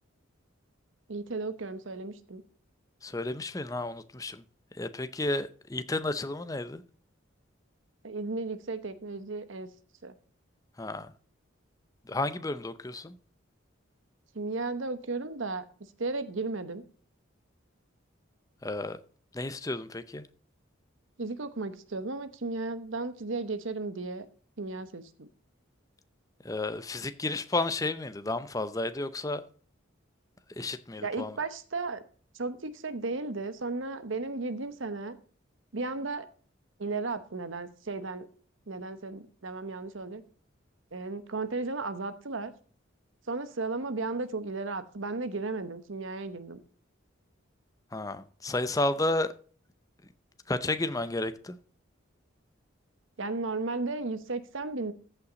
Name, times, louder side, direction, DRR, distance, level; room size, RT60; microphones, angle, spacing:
voice 1, 1.1-2.4 8.0-9.7 10.0-10.2 14.3-15.6 16.0-16.8 21.2-24.3 24.6-25.3 31.0-32.0 32.3-35.2 35.7-36.3 36.8-38.3 38.7-40.2 40.9-42.5 43.3-46.6 53.2-54.9, right 3 dB, 70° right, 0.9 m, -34 dB
voice 2, 3.0-4.4 4.8-6.8 10.8-11.1 12.1-13.2 18.6-19.0 19.3-20.3 26.4-29.4 30.6-31.4 47.9-49.3 50.5-51.6, left 2 dB, 15° left, 0.6 m, -32 dB
14.5 x 5.8 x 3.9 m
head